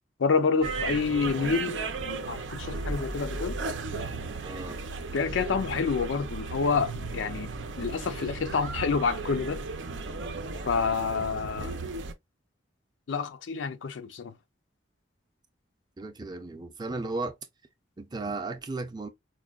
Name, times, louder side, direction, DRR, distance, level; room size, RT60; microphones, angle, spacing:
voice 1, 0.2-1.8 2.1-3.6 5.1-7.5 7.8-9.6 10.7-11.7 13.1-14.3, left 5 dB, 85° left, 0.5 m, -28 dB
sound 1, 0.6-12.1, right 3 dB, 85° right, 0.6 m, -35 dB
voice 2, 4.4-4.8 16.0-17.4 18.0-19.1, right 3 dB, 25° right, 0.5 m, -35 dB
4.7 x 2.2 x 2.3 m
head